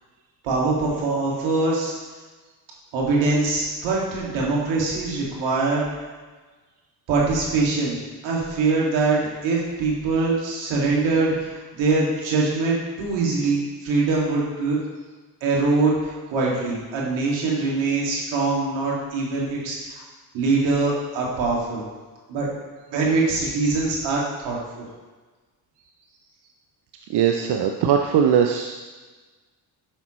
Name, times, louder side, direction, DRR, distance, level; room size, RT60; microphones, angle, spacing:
voice 1, 0.4-1.9 2.9-5.8 7.1-8.0 8.2-11.3 11.7-14.8 15.4-16.0 16.3-19.8 20.3-21.8 22.3-22.5 22.9-24.8, right 3 dB, 80° right, -4 dB, 2.2 m, -23 dB
voice 2, 27.1-28.7, right 8 dB, 60° right, 3 dB, 0.7 m, -20 dB
9.8 x 5.8 x 3.1 m, 1.3 s
supercardioid pair, 60°, 45 cm